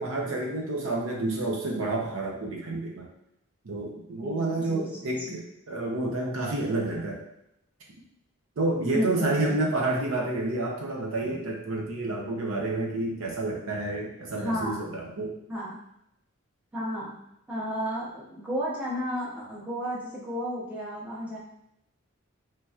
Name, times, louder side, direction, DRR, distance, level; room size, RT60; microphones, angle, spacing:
voice 1, 0.0-3.1 3.6-7.2 8.6-15.3, right 2 dB, 75° right, -1 dB, 0.6 m, -29 dB
voice 2, 4.2-5.4 8.9-9.6 14.3-14.9 15.5-15.8 16.7-17.1 17.5-21.4, equal, 5° right, -6 dB, 0.6 m, -33 dB
3.1 x 2.8 x 2.3 m, 0.78 s
head